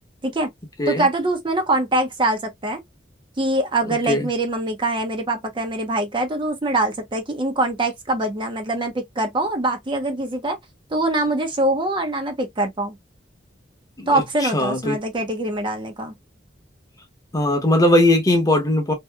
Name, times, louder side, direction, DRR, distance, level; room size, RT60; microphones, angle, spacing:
voice 1, 0.9-2.8 3.4-10.6 10.9-13.0 14.1-16.1, right 2 dB, 25° right, 0.5 m, -23 dB
voice 2, 14.4-15.0 17.3-18.9, left 1 dB, 20° left, 0.8 m, -19 dB
2.8 x 2.6 x 2.2 m
head